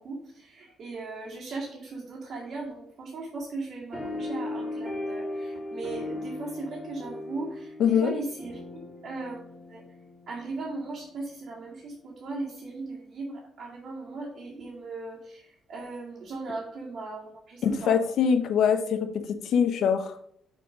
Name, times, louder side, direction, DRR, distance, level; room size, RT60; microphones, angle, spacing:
voice 1, 0.0-9.4 9.7-9.8 10.3-18.0, right 3 dB, 70° right, -5 dB, 2.2 m, -38 dB
sound 1, 3.9-10.8, left 2 dB, 10° right, 2.3 m, -37 dB
voice 2, 7.8-8.1 17.6-19.1 19.4-20.2, left 7 dB, 70° left, 7 dB, 0.9 m, -23 dB
6.7 x 3.8 x 5.1 m, 0.68 s
cardioid pair, 90°, 0 cm